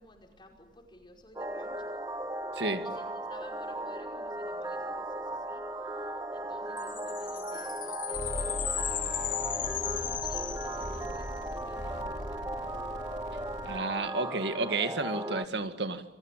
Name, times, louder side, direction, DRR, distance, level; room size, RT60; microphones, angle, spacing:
voice 1, 0.0-1.9 2.8-5.6 6.3-12.7, left 1 dB, 25° left, 3 dB, 5.3 m, -54 dB
sound 1, 1.4-15.5, right 1 dB, 20° right, 1.3 m, -37 dB
sound 2, 6.8-11.4, left 11 dB, 45° left, 1.3 m, -36 dB
sound 3, 8.1-13.8, equal, 80° left, 3.0 m, -41 dB
voice 2, 13.6-16.0, right 3 dB, 70° right, 9 dB, 1.9 m, -31 dB
28.5 x 22.0 x 9.1 m, 0.92 s
head